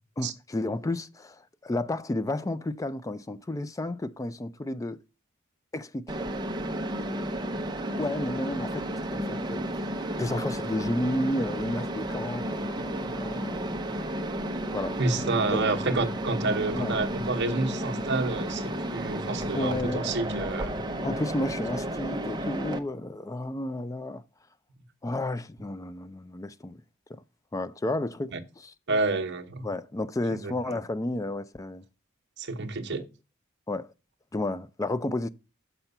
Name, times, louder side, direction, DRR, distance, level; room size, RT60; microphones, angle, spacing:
voice 1, 0.2-5.0 5.7-6.1 8.0-13.7 14.7-15.0 15.5-15.6 16.7-17.0 19.5-20.1 21.0-24.2 25.0-26.8 27.1-27.2 27.5-28.7 29.6-31.8 32.9-33.0 33.7-33.9 34.3-35.3, left 1 dB, 15° left, 0.4 m, -32 dB
Mechanisms, 6.1-22.8, right 1 dB, 20° right, 0.7 m, -32 dB
voice 2, 15.0-20.8 28.3-28.4 28.9-29.7 30.3-30.8 32.4-33.0, right 3 dB, 55° right, 1.0 m, -29 dB
6.8 x 5.9 x 5.4 m
head